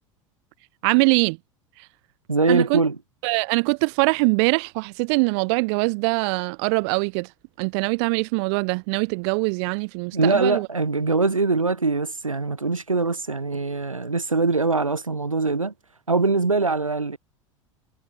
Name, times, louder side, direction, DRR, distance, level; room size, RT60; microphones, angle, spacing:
voice 1, 0.8-1.4 1.8-1.9 2.5-2.8 3.2-7.3 7.6-10.7, right 32 dB, 55° right, 2.9 m, -23 dB
voice 2, 2.3-3.0 10.1-15.7 16.1-17.2, right 3 dB, 90° right, 3.6 m, -22 dB
figure-of-eight pair, 80°, 17 cm